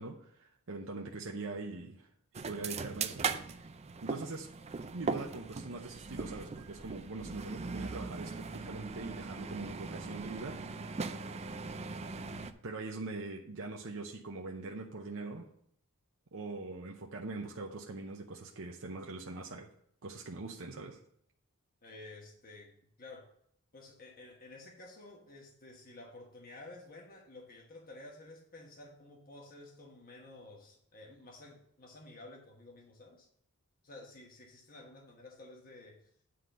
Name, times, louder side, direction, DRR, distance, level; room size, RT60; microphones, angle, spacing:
voice 1, 0.0-2.1 2.4-3.3 4.0-4.5 4.9-10.7 12.6-15.5 16.3-19.7 20.0-21.0, right 3 dB, 60° right, 0 dB, 0.8 m, -42 dB
sound 1, 2.3-12.5, right 4 dB, 30° right, 0.5 m, -39 dB
voice 2, 11.4-11.7 21.8-22.7 23.0-23.3 23.7-33.3 33.8-36.1, left 2 dB, 40° left, 0 dB, 1.3 m, -52 dB
9.4 x 3.8 x 6.7 m, 0.68 s
head